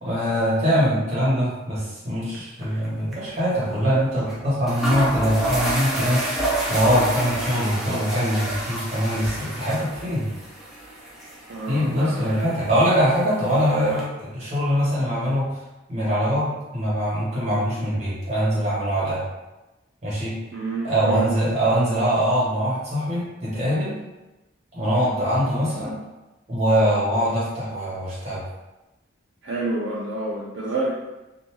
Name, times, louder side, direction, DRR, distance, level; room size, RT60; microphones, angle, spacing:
voice 1, 0.0-6.4 6.7-10.2 11.7-15.5 15.9-19.2 20.0-20.4 20.8-23.9 24.7-25.9 26.5-28.4, equal, 35° right, -8 dB, 1.0 m, -23 dB
sound 1, 2.6-2.9 3.1-3.2 4.3-4.4 4.7-14.0, right 1 dB, ahead, 0.5 m, -29 dB
voice 2, 11.5-12.7 20.5-21.3 29.4-30.9, right 2 dB, 60° right, -6 dB, 0.4 m, -29 dB
2.6 x 2.3 x 3.0 m, 1.0 s
head